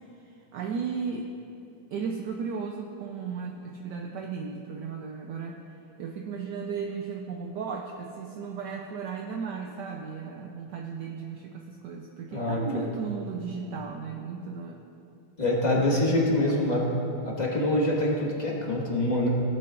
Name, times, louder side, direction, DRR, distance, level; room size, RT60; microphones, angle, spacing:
voice 1, 0.0-1.3 1.9-5.6 6.0-14.8 15.8-17.0 18.8-18.9, right 5 dB, 70° right, 1 dB, 1.1 m, -35 dB
voice 2, 12.3-12.8 15.4-16.8 17.2-19.3, left 1 dB, 25° left, -4 dB, 1.5 m, -25 dB
16.5 x 8.8 x 2.5 m, 2.8 s
omnidirectional pair, 2.1 m